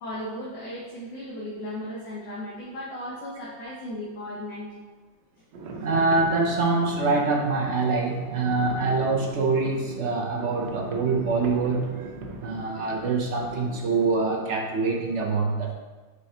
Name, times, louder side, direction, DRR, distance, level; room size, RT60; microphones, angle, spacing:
voice 1, 0.0-4.7, left 1 dB, 75° left, -7 dB, 1.7 m, -36 dB
sound 1, 5.5-14.5, right 2 dB, 85° right, 1.4 m, -39 dB
voice 2, 5.8-12.1 12.4-15.7, right 3 dB, 60° right, 0 dB, 0.7 m, -25 dB
6.4 x 5.3 x 2.8 m, 1.3 s
omnidirectional pair, 1.9 m